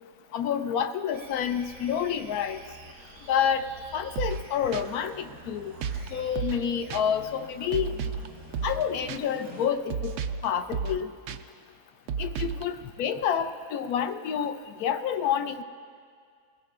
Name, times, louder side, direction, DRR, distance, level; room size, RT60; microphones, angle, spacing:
voice 1, 0.3-2.6 3.3-3.7 3.9-5.7 6.1-7.9 8.6-10.2 10.4-11.1 12.2-15.6, left 8 dB, 90° left, 9 dB, 1.1 m, -28 dB
sound 1, 1.1-9.8, right 2 dB, 85° right, 2.5 m, -48 dB
sound 2, 4.2-4.4 4.7-4.8 5.8-6.1 6.4-6.6 6.9-7.0 7.7-8.3 8.5-8.8 9.1-9.2 9.9-10.4 10.7-11.0 11.3-11.4 12.1-12.6, right 6 dB, 65° right, 0.8 m, -32 dB
21.0 x 16.0 x 2.4 m, 2.1 s
omnidirectional pair, 1.5 m